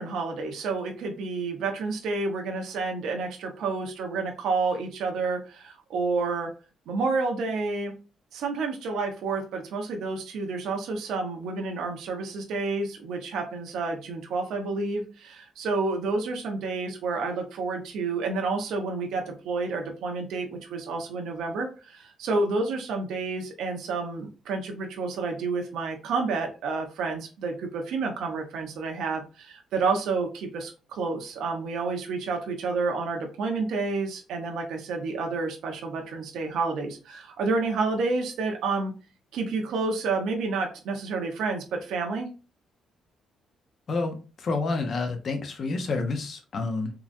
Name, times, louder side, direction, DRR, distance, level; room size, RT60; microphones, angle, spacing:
voice 1, 0.0-6.5 6.9-7.9 8.3-38.9 39.3-42.3, right 3 dB, 80° right, 3 dB, 0.8 m, -29 dB
voice 2, 43.9-46.9, left 3 dB, 45° left, 6 dB, 0.8 m, -29 dB
3.8 x 2.9 x 2.5 m, 0.33 s
cardioid pair, 120°, 0 cm